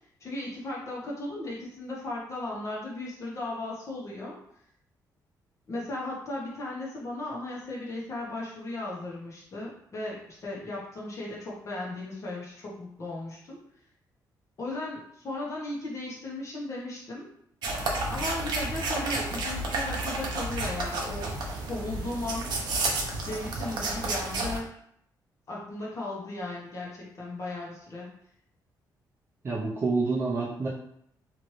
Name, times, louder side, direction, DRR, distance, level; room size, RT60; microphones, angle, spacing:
voice 1, 0.2-4.4 5.7-13.6 14.6-17.3 18.1-21.4 21.7-22.5 23.2-24.7 25.5-28.1, left 2 dB, 45° left, -4 dB, 0.9 m, -36 dB
sound 1, 17.6-24.6, right 2 dB, 75° right, 0.6 m, -31 dB
voice 2, 29.4-30.7, right 3 dB, 35° right, -5 dB, 0.5 m, -28 dB
3.0 x 2.5 x 3.0 m, 0.70 s
cardioid pair, 130°, 7 cm